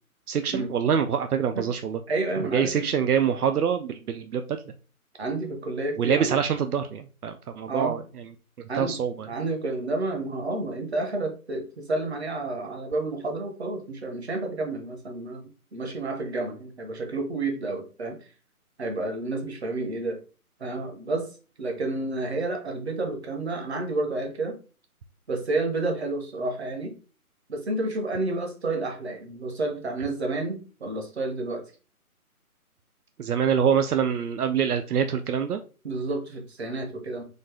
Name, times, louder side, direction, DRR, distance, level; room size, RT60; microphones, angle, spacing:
voice 1, 0.3-2.0 2.4-4.6 6.0-8.0 8.8-9.3 33.2-35.6, right 7 dB, 80° right, 7 dB, 0.6 m, -25 dB
voice 2, 2.1-2.9 5.2-6.4 7.7-8.0 8.7-9.0 9.3-18.2 18.8-20.2 20.6-21.3 21.6-24.6 25.3-26.9 27.5-31.6 35.8-37.2, right 2 dB, 45° right, 4 dB, 0.9 m, -30 dB
4.2 x 2.5 x 3.2 m, 0.35 s
figure-of-eight pair, 170°, 45 cm